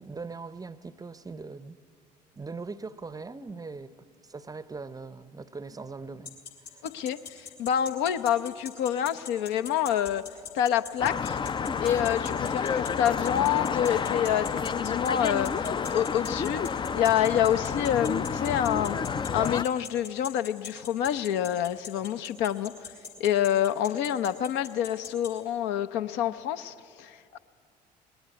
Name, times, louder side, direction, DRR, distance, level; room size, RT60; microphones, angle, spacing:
voice 1, 0.0-1.8 2.3-6.4 6.7-6.8, right 4 dB, 15° right, 0.7 m, -41 dB
sound 1, 6.3-25.3, left 6 dB, 75° left, 3.1 m, -40 dB
voice 2, 6.8-10.2 10.5-11.4 11.8-15.6 15.9-16.6 16.9-19.0 19.3-22.7 23.2-27.4, left 10 dB, 60° left, 0.8 m, -27 dB
sound 2, 11.0-19.6, left 6 dB, 20° left, 0.5 m, -30 dB
21.0 x 19.5 x 9.5 m
figure-of-eight pair, 55°, 21 cm